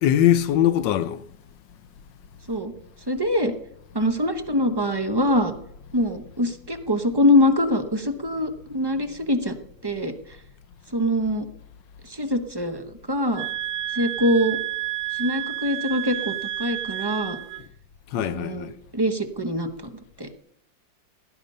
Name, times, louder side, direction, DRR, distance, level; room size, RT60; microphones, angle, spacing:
voice 1, 0.0-1.2 18.1-18.7, left 11 dB, 75° left, 1.4 m, -21 dB
voice 2, 3.1-3.5 3.9-5.5 5.9-9.5 9.8-10.1 10.9-11.5 12.1-13.5 13.9-14.6 15.2-16.3 16.6-17.4 18.2-18.7 18.9-19.9 20.2-20.3, left 1 dB, 25° right, 0.5 m, -23 dB
sound 1, 13.3-17.7, right 13 dB, 80° right, 1.4 m, -30 dB
17.5 x 11.0 x 5.4 m
omnidirectional pair, 2.0 m